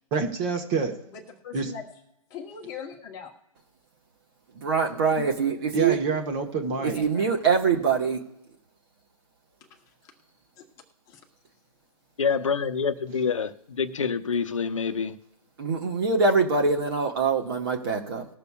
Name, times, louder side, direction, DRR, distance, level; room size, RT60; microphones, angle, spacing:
voice 1, 0.1-0.9 1.5-1.7 5.7-7.0, right 4 dB, 20° right, 1.4 m, -27 dB
voice 2, 1.1-1.8 2.3-3.3 6.7-7.4 10.6-10.7 11.1-11.2, left 6 dB, 15° left, 1.1 m, -40 dB
voice 3, 4.5-6.0 6.8-8.2 15.6-18.2, right 5 dB, 40° right, 1.6 m, -24 dB
voice 4, 12.2-15.2, left 6 dB, 60° left, 0.8 m, -27 dB
20.0 x 6.7 x 2.4 m
figure-of-eight pair, 140°, 19 cm